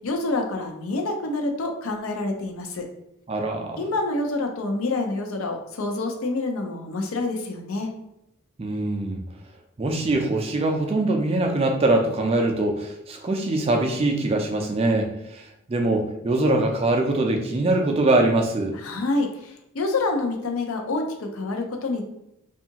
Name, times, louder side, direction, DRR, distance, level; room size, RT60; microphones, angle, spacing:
voice 1, 0.0-2.9 3.8-7.9 18.7-22.0, left 2 dB, 80° left, 3 dB, 0.5 m, -27 dB
voice 2, 3.3-3.8 8.6-9.2 9.8-18.8, right 2 dB, 25° right, 2 dB, 0.3 m, -23 dB
2.6 x 2.3 x 2.8 m, 0.80 s
head